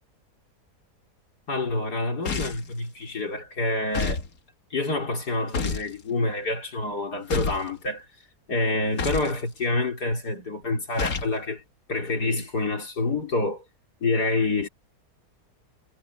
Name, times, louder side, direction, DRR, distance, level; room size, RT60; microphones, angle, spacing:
voice 1, 1.5-4.2 4.7-8.0 8.5-11.6 11.9-13.6 14.0-14.7, left 2 dB, 80° left, 4.5 m, -27 dB
sound 1, 2.2-2.7 3.9-4.3 5.5-5.9 7.3-7.7 9.0-9.4 11.0-11.3, left 5 dB, 65° left, 2.0 m, -28 dB
omnidirectional pair, 1.7 m